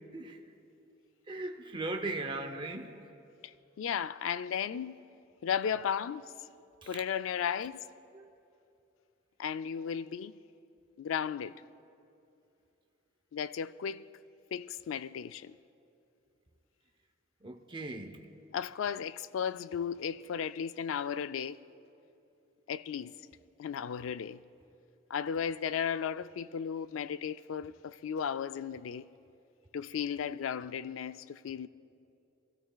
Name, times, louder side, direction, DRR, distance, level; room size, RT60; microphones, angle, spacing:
voice 1, 1.3-3.0 6.8-7.0 8.1-8.3 17.4-18.2, right 2 dB, 25° right, 0.6 m, -38 dB
voice 2, 3.8-5.0 5.4-6.3 6.9-7.8 9.4-10.4 11.0-11.6 13.3-14.1 14.5-15.6 18.5-21.6 22.7-23.1 23.6-24.4 25.1-29.1 29.7-31.7, left 7 dB, 80° left, 0.3 m, -35 dB
28.5 x 13.0 x 2.3 m
head